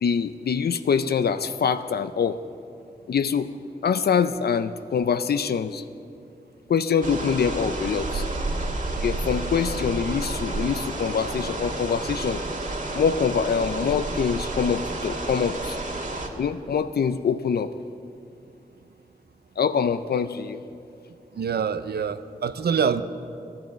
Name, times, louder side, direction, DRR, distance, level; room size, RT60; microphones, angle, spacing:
voice 1, 0.0-2.4 3.1-3.5 3.8-5.8 6.7-8.3 9.0-12.4 12.9-15.8 16.4-17.7 19.6-20.6, left 6 dB, 80° left, 11 dB, 0.5 m, -24 dB
sound 1, 7.0-16.3, right 2 dB, 55° right, 1.7 m, -30 dB
voice 2, 21.3-23.0, right 7 dB, 90° right, 12 dB, 0.6 m, -25 dB
14.0 x 10.5 x 7.4 m, 2.6 s
wide cardioid pair, 70°, 16 cm